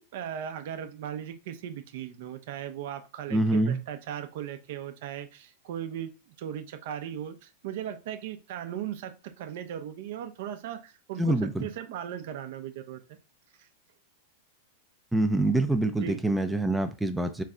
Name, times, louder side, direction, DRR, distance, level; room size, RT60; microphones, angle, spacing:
voice 1, 0.1-13.2 13.6-13.7 15.9-16.2, right 10 dB, 65° right, 0.6 m, -38 dB
voice 2, 3.3-3.8 11.2-11.7 15.1-17.4, right 2 dB, 5° right, 0.4 m, -25 dB
3.3 x 3.2 x 3.7 m
hypercardioid pair, 120°, 0 cm